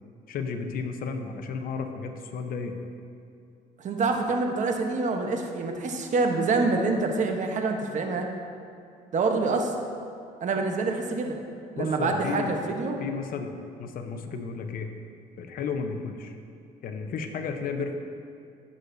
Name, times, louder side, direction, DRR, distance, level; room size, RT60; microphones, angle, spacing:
voice 1, 0.3-2.7 11.8-12.5 13.0-13.5 13.8-14.9 15.4-16.4 16.8-17.9, left 5 dB, 60° left, 5 dB, 0.9 m, -33 dB
voice 2, 3.8-8.3 9.1-9.7 10.4-11.4 11.8-13.0, right 3 dB, 45° right, 3 dB, 1.1 m, -26 dB
16.5 x 6.5 x 2.7 m, 2.5 s
cardioid pair, 110°, 17 cm